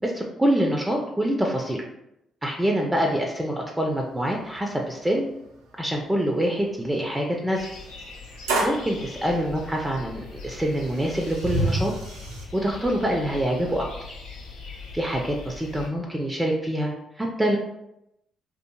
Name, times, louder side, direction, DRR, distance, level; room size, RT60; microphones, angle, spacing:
voice 1, 0.0-1.8 2.4-5.3 5.8-7.7 8.6-11.9 12.5-13.9 14.9-17.6, right 1 dB, 15° right, 0 dB, 0.4 m, -25 dB
sound 1, 4.2-4.3 4.6-4.7 5.4-5.5 7.6-7.7 8.5-8.9 10.1-10.2 10.7-12.4, right 2 dB, 90° right, 0.4 m, -27 dB
sound 2, 7.5-15.9, left 4 dB, 80° left, 0.4 m, -41 dB
2.7 x 2.4 x 2.2 m, 0.84 s
hypercardioid pair, 45°, 0 cm